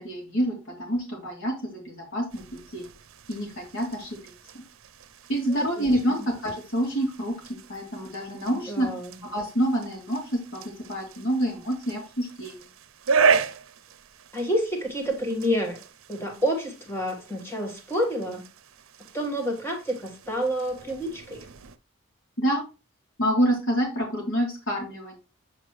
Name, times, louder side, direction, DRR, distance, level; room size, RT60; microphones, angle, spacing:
voice 1, 0.0-2.4 2.7-2.8 3.3-4.2 4.5-4.6 5.3-8.9 9.2-12.6 20.9-21.0 22.4-22.6 23.2-25.1, equal, 70° left, -1 dB, 3.5 m, -27 dB
sound 1, 2.3-21.8, right 5 dB, 85° right, 0.6 m, -34 dB
voice 2, 5.5-5.9 8.7-9.2 14.3-15.8 16.1-18.5 19.1-21.5, equal, 10° left, 1 dB, 1.6 m, -29 dB
8.1 x 5.1 x 3.2 m, 0.30 s
head